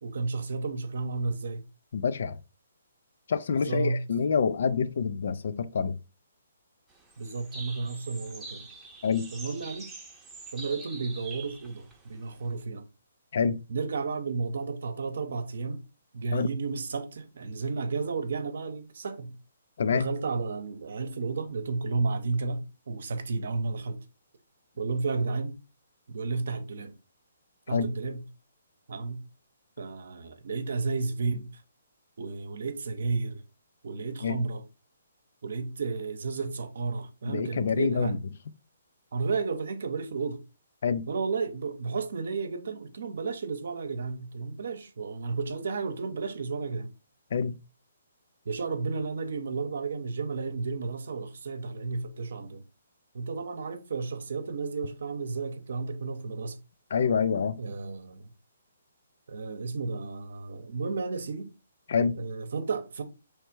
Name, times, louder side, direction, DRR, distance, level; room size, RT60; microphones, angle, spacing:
voice 1, 0.0-1.6 3.5-4.0 7.2-8.7 9.3-9.9 10.5-12.8 13.7-15.8 16.1-19.4 19.9-24.0 24.8-25.6 26.1-26.9 27.7-28.2 28.9-29.2 29.8-31.5 32.2-33.4 33.8-34.6 35.4-38.2 39.1-40.4 41.1-46.9 48.4-52.6 53.1-56.6 57.6-58.3 59.3-61.5 62.2-63.0, right 4 dB, 70° right, 0.8 m, -32 dB
voice 2, 1.9-2.4 3.3-6.0 9.0-9.3 13.3-13.6 16.3-16.5 19.8-20.1 27.7-27.9 34.2-34.4 37.2-38.2 40.8-41.1 47.3-47.6 56.9-57.6 61.9-62.2, left 6 dB, 65° left, 0.4 m, -27 dB
sound 1, 6.9-12.6, right 3 dB, 10° right, 0.7 m, -45 dB
3.3 x 3.2 x 4.6 m
hypercardioid pair, 150°, 0 cm